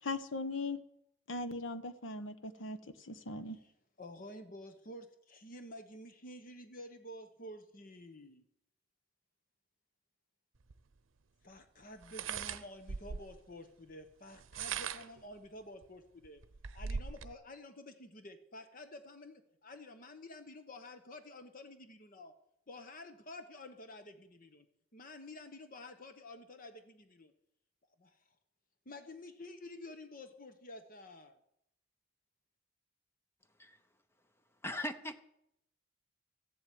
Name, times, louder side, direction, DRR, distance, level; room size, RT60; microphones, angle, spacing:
voice 1, 0.0-0.8 1.3-3.6, left 3 dB, 70° left, 11 dB, 1.0 m, -39 dB
voice 2, 4.0-8.5 11.4-16.4 16.7-22.3 22.7-24.7 24.9-27.3 28.0-28.2 28.8-31.4, left 1 dB, 45° left, 8 dB, 1.0 m, -50 dB
sound 1, 10.7-10.8 12.0-13.4 14.3-15.2 15.8-15.9 16.2-17.3, right 6 dB, 80° right, 0.7 m, -40 dB
voice 3, 34.6-35.2, left 1 dB, 10° left, 9 dB, 0.7 m, -39 dB
14.0 x 7.7 x 9.3 m, 0.78 s
head